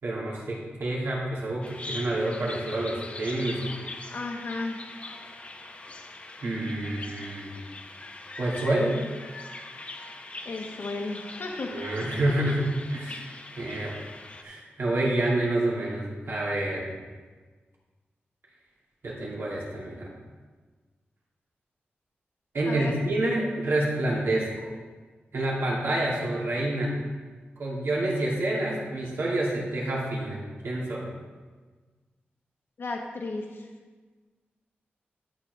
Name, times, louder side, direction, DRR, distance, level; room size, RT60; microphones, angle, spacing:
voice 1, 0.0-3.6 6.4-7.5 8.4-9.0 11.7-14.0 14.4-16.9 19.0-20.1 22.5-24.7 25.3-26.9 27.6-31.1, right 1 dB, 80° right, -5 dB, 2.7 m, -28 dB
Bird vocalization bird call bird song, 1.6-14.4, left 2 dB, 30° left, 0.7 m, -42 dB
voice 2, 4.1-4.9 10.4-11.8 22.7-22.9 32.8-33.7, left 3 dB, 65° left, 1 dB, 1.2 m, -34 dB
12.0 x 7.1 x 3.3 m, 1.4 s
wide cardioid pair, 120°, 4 cm